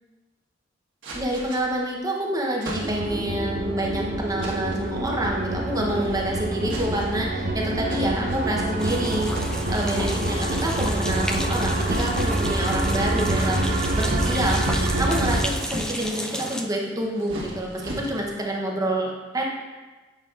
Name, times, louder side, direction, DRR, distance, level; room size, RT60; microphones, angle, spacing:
sound 1, 1.0-1.9 2.6-3.3 4.4-4.9 5.8-6.2 6.6-7.3 7.9-8.9 9.3-10.0 10.3-10.7 11.8-12.7 13.3-14.6 15.1-16.2 16.9-18.5, right 1 dB, 75° right, 1.4 m, -39 dB
voice 1, 1.1-9.4 9.7-19.5, right 1 dB, 20° right, -1 dB, 0.7 m, -27 dB
sound 2, 2.7-15.4, right 1 dB, 50° right, 0.7 m, -26 dB
sound 3, 8.8-16.6, equal, 5° left, 0.4 m, -33 dB
8.3 x 5.2 x 2.4 m, 1.3 s
head